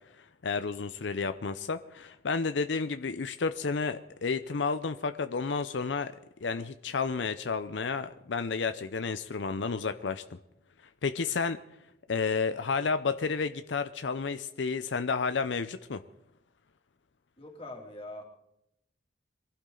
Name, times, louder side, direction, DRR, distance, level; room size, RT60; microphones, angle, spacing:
voice 1, 0.4-6.1 6.4-10.4 11.0-11.6 12.1-16.0, left 4 dB, 85° left, 10 dB, 0.6 m, -31 dB
voice 2, 17.4-18.2, left 1 dB, 35° left, 1 dB, 2.7 m, -43 dB
23.0 x 16.0 x 3.9 m, 0.83 s
head